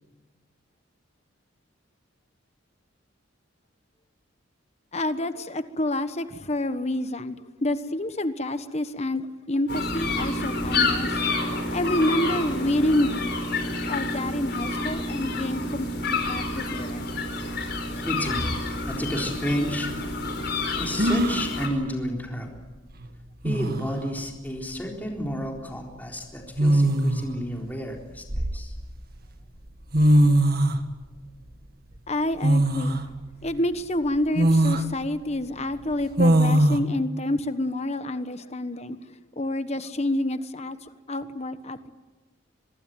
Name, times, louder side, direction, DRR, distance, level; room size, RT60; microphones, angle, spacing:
voice 1, 4.9-11.2 11.7-13.3 13.9-17.1 32.1-33.0 33.4-39.0 39.4-40.8 41.1-41.9, left 1 dB, 35° left, 1.3 m, -28 dB
sound 1, 9.7-21.7, left 2 dB, 55° left, 4.9 m, -28 dB
voice 2, 18.1-18.4 18.9-19.9 20.7-22.5 23.4-28.8, equal, 10° left, 3.9 m, -31 dB
sound 2, 19.4-19.5 21.0-21.5 23.0-23.1 23.4-23.9 25.3-25.5 26.6-27.3 28.0-29.0 29.7-29.8 29.9-30.8 32.4-33.0 33.5-33.6 34.3-34.8 36.2-36.8, right 1 dB, 50° right, 2.0 m, -20 dB
24.5 x 22.0 x 9.2 m
head